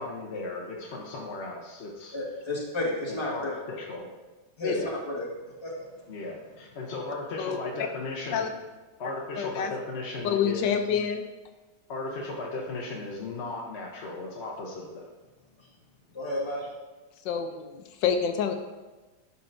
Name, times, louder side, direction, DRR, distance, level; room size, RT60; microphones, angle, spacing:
voice 1, 0.0-2.2 3.1-4.1 4.7-4.9 6.1-8.6 9.0-10.8 11.9-15.0, left 2 dB, 50° left, -2 dB, 0.9 m, -36 dB
voice 2, 2.1-3.5 4.6-4.7 5.0-5.2 5.6-5.7 16.1-16.7, left 1 dB, 15° left, -4 dB, 1.4 m, -31 dB
voice 3, 9.4-9.7 10.2-11.2 17.2-18.5, left 7 dB, 80° left, 6 dB, 1.3 m, -27 dB
11.0 x 5.5 x 2.6 m, 1.2 s
omnidirectional pair, 2.0 m